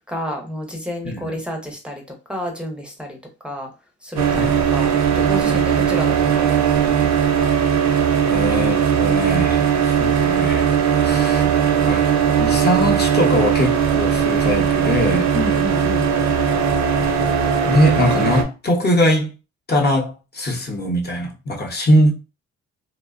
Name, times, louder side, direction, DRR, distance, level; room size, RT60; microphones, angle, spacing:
voice 1, 0.1-2.0 2.3-3.2 3.4-3.7 4.0-7.1 15.3-16.1, equal, 5° right, 0.6 m, -30 dB
voice 2, 1.0-1.4 4.3-4.5 8.2-10.6 11.0-11.5 11.9-12.1 12.4-15.3 17.7-19.3 19.7-22.1, equal, 35° left, 0.8 m, -21 dB
sound 1, 4.2-18.4, right 7 dB, 65° right, 0.6 m, -18 dB
2.6 x 2.1 x 2.4 m
cardioid pair, 90°, 30 cm